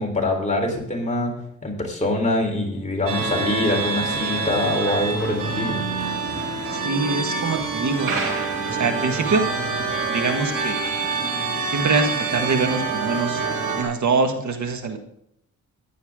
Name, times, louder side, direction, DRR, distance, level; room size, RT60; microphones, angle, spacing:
voice 1, 0.0-1.3 1.6-5.7, left 2 dB, 25° left, 1 dB, 3.9 m, -24 dB
sound 1, 3.1-13.8, right 4 dB, 80° right, 3.4 m, -26 dB
voice 2, 6.7-8.1 8.7-9.5 10.0-10.8 11.7-13.4 13.7-15.0, right 4 dB, 65° right, 6 dB, 1.6 m, -24 dB
14.5 x 10.5 x 3.7 m, 0.72 s
cardioid pair, 90°, 31 cm